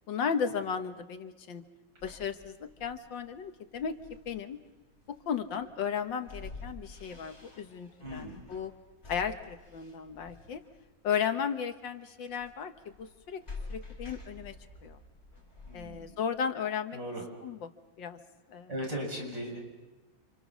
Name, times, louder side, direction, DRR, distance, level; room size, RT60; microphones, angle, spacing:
voice 1, 0.1-1.6 2.0-4.0 4.3-4.6 5.1-8.7 9.1-10.6 11.0-13.4 13.7-14.6 14.8-15.0 15.7-17.0 17.4-17.7 18.0-18.2 18.5-18.7, left 7 dB, 70° left, 8 dB, 1.9 m, -35 dB
sound 1, 2.0-16.4, left 3 dB, 35° left, 5.9 m, -49 dB
voice 2, 8.0-8.5 15.7-16.1 16.9-17.2 18.7-19.6, equal, 60° right, 1 dB, 8.0 m, -38 dB
30.0 x 27.5 x 6.2 m, 1.1 s
omnidirectional pair, 2.1 m